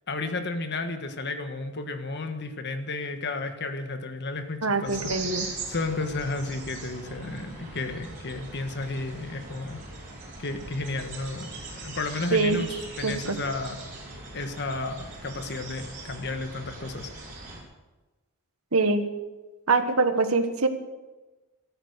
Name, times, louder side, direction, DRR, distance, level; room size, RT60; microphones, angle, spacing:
voice 1, 0.1-9.8 10.4-13.8 14.3-17.1, left 3 dB, 50° left, 7 dB, 1.5 m, -33 dB
voice 2, 4.6-5.5 12.3-12.6 13.0-13.3 18.7-19.0 19.7-20.7, right 3 dB, 70° right, 8 dB, 1.5 m, -24 dB
sound 1, 4.8-17.6, right 3 dB, 35° right, 5.2 m, -40 dB
14.5 x 13.0 x 6.6 m, 1.2 s
head